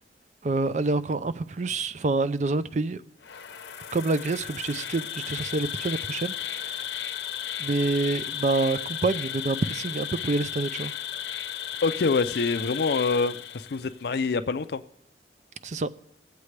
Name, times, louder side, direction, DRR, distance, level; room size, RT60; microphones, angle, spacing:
voice 1, 0.4-3.0 3.9-7.0 7.6-10.9 15.6-15.9, right 3 dB, 40° right, 0.4 m, -27 dB
Insect, 3.2-14.0, left 10 dB, 80° left, 0.8 m, -35 dB
voice 2, 11.8-14.8, left 4 dB, 60° left, 0.5 m, -26 dB
19.5 x 8.2 x 3.3 m
head